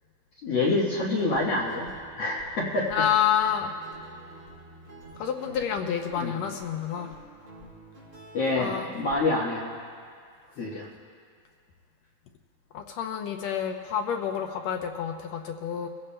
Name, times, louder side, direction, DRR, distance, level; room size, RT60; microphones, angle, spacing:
voice 1, 0.4-1.9 2.2-3.0 6.2-6.4 8.3-9.8 10.6-10.9, left 2 dB, 60° left, -5 dB, 2.2 m, -27 dB
Guitar, 0.9-9.2, right 2 dB, 30° right, 3.3 m, -48 dB
voice 2, 2.9-3.7 5.2-7.1 8.6-8.9 12.7-15.9, left 9 dB, 75° left, 4 dB, 1.8 m, -28 dB
25.0 x 15.5 x 2.2 m, 2.1 s
omnidirectional pair, 3.4 m